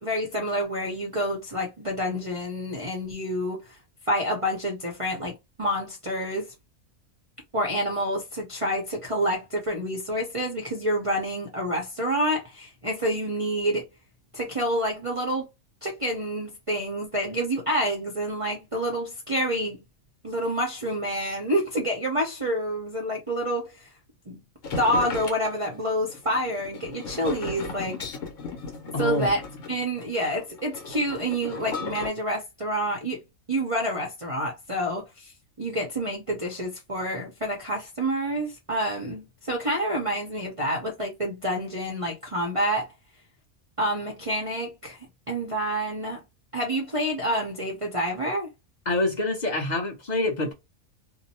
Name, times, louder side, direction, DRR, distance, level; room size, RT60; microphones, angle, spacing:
voice 1, 0.0-3.7 4.1-5.3 5.6-6.5 7.5-13.8 14.3-15.5 15.8-19.8 20.2-23.9 24.3-24.4 24.8-28.1 29.0-29.4 29.7-33.2 33.5-35.3 35.6-42.9 43.8-45.0 45.3-46.2 46.5-48.5, equal, 35° right, 0.6 m, -28 dB
sound 1, 24.6-32.1, left 4 dB, 70° left, 1.3 m, -36 dB
voice 2, 28.9-29.3 48.9-50.5, left 2 dB, 35° left, 0.9 m, -26 dB
2.8 x 2.1 x 2.6 m
omnidirectional pair, 1.4 m